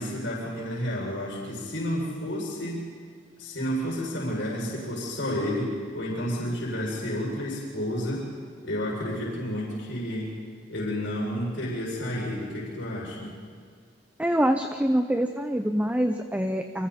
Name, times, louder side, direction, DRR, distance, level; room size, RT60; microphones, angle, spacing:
voice 1, 0.0-2.8 3.4-8.2 8.6-10.3 10.7-13.3, equal, 75° left, -4 dB, 7.1 m, -31 dB
voice 2, 14.2-16.9, equal, 10° right, 6 dB, 0.7 m, -25 dB
29.5 x 26.0 x 4.4 m, 2.1 s
head